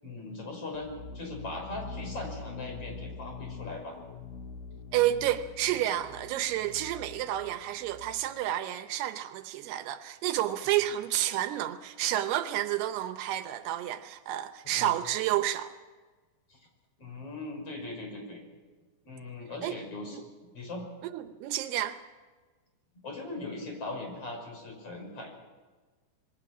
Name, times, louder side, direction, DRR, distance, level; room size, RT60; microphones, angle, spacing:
voice 1, 0.0-3.9 14.6-14.9 16.5-16.6 17.0-18.4 19.0-20.2 20.5-20.8 23.0-25.3, left 2 dB, 35° left, 6.7 m, -39 dB
sound 1, 0.7-8.4, left 5 dB, 65° left, 2.9 m, -44 dB
voice 2, 4.9-15.7 19.6-19.8 20.1-20.2 21.1-22.0, right 13 dB, 80° right, 2.9 m, -30 dB
26.5 x 21.5 x 6.1 m
omnidirectional pair, 4.6 m